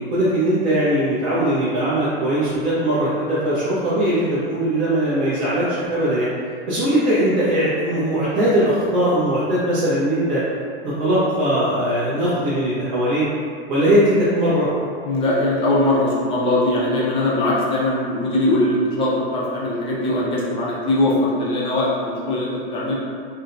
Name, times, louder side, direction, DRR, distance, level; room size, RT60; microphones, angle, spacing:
voice 1, 0.0-6.3 6.7-10.4 10.8-13.3 13.7-14.7, right 1 dB, 35° right, -12 dB, 0.7 m, -20 dB
voice 2, 15.0-22.9, left 1 dB, 15° left, -6 dB, 0.5 m, -21 dB
2.6 x 2.1 x 2.5 m, 2.2 s
hypercardioid pair, 130°, 32 cm